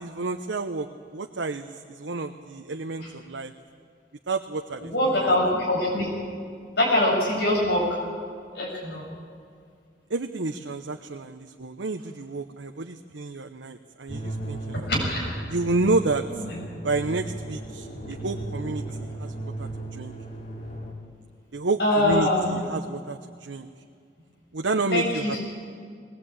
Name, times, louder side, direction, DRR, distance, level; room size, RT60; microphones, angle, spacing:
voice 1, 0.0-3.5 4.3-5.3 10.1-14.9 15.5-16.2 16.8-20.1 21.5-23.7 24.5-25.4, right 3 dB, 90° right, 5 dB, 0.9 m, -30 dB
voice 2, 4.8-6.1 6.7-8.0 8.5-9.1 14.7-15.3 16.3-16.6 21.8-22.6 24.9-25.4, left 1 dB, 65° left, -2 dB, 7.3 m, -24 dB
sound 1, 14.1-20.9, right 2 dB, 40° left, 3.1 m, -36 dB
21.0 x 19.0 x 8.8 m, 2.1 s
head